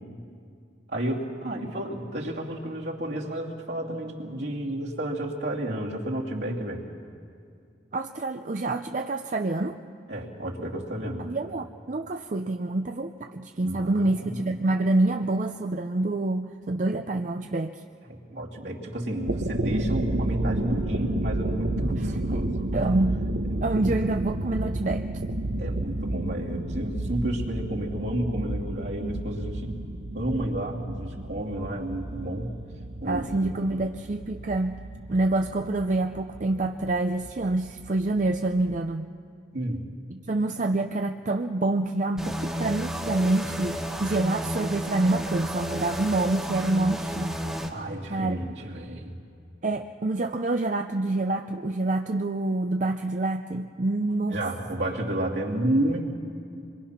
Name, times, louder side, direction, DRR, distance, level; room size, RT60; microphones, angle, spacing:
voice 1, 0.9-6.8 10.1-11.3 13.6-14.6 18.1-22.9 23.5-24.0 25.6-29.7 30.1-32.5 33.0-33.8 39.5-39.8 47.7-49.1 54.3-56.2, right 1 dB, 65° right, -2 dB, 2.8 m, -31 dB
voice 2, 7.9-9.8 11.2-17.8 22.0-23.3 23.6-25.1 33.1-39.1 40.1-47.3 48.1-48.4 49.6-54.4, right 2 dB, 40° right, 5 dB, 0.6 m, -27 dB
sound 1, 19.1-38.8, right 1 dB, 85° right, 1.2 m, -32 dB
sound 2, 42.2-47.7, equal, 5° right, 1.5 m, -32 dB
26.0 x 22.5 x 5.8 m, 2.4 s
head